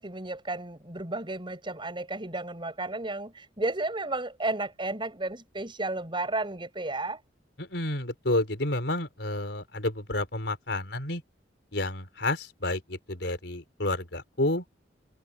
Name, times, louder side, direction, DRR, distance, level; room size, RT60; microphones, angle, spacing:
voice 1, 0.0-7.2, right 2 dB, 25° right, 6.6 m, -33 dB
voice 2, 7.6-11.2 11.7-14.6, left 1 dB, 70° left, 4.7 m, -30 dB
head